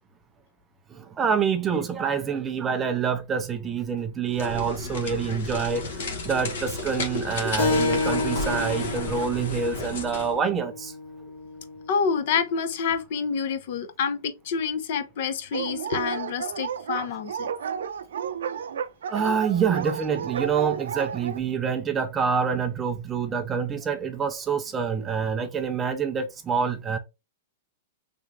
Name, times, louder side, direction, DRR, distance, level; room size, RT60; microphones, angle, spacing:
voice 1, 0.9-10.9 19.1-27.0, right 6 dB, 15° right, 0.3 m, -27 dB
sound 1, 4.3-10.4, left 2 dB, 65° left, 1.1 m, -33 dB
Keyboard (musical), 7.6-12.7, left 3 dB, 85° left, 1.9 m, -30 dB
voice 2, 11.9-17.5, left 6 dB, 45° left, 0.6 m, -28 dB
Dog, 15.5-21.4, right 7 dB, 85° right, 0.5 m, -32 dB
3.4 x 3.0 x 2.6 m
supercardioid pair, 170°, 0 cm